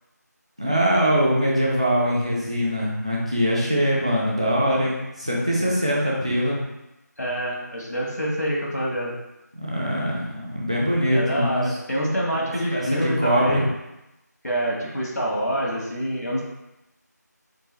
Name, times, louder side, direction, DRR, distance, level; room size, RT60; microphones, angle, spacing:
voice 1, 0.6-6.6 9.5-11.8 12.7-13.7, equal, 20° right, -4 dB, 0.5 m, -22 dB
voice 2, 7.2-9.1 11.1-13.6 14.4-16.4, equal, 65° left, -3 dB, 1.5 m, -26 dB
4.5 x 2.4 x 4.2 m, 0.94 s
figure-of-eight pair, 170°, 10 cm